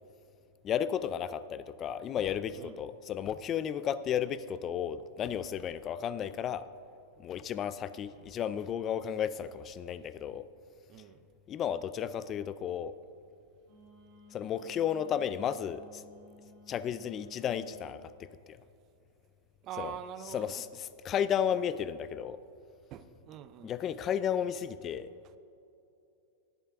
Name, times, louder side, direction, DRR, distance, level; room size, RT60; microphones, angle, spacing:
voice 1, 0.6-6.7 7.2-10.5 11.5-12.9 14.3-16.0 16.7-18.6 19.8-20.0 20.3-22.4 23.6-25.1, left 9 dB, 25° left, 15 dB, 0.3 m, -33 dB
voice 2, 10.9-11.3 19.6-20.6 22.9-23.7, right 10 dB, 35° right, 14 dB, 0.5 m, -44 dB
Wind instrument woodwind instrument, 13.6-18.0, left 3 dB, 55° right, 2.6 m, -57 dB
20.0 x 7.4 x 3.5 m, 2.6 s
supercardioid pair, 145°, 0 cm